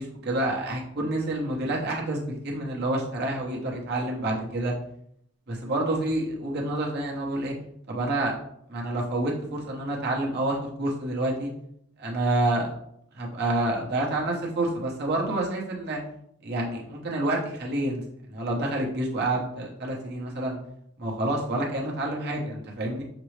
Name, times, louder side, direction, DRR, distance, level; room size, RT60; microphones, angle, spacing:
voice 1, 0.0-4.7 5.5-7.5 7.9-8.4 8.7-11.5 12.0-12.7 13.1-16.0 16.4-18.0 18.3-20.6 21.0-23.0, right 1 dB, 50° right, -2 dB, 0.8 m, -28 dB
5.9 x 2.0 x 3.1 m, 0.72 s
head